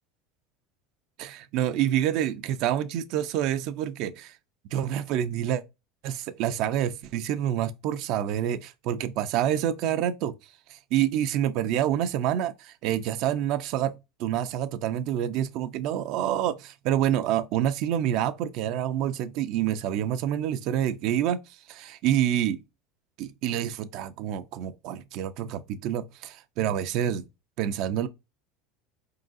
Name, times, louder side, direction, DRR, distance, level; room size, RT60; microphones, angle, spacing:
voice 1, 1.2-4.4 4.7-5.6 6.0-10.3 10.7-13.9 14.2-21.4 21.7-22.6 23.2-27.3 27.6-28.1, right 11 dB, 45° right, 0.4 m, -27 dB
4.6 x 3.7 x 2.4 m
cardioid pair, 180°, 0 cm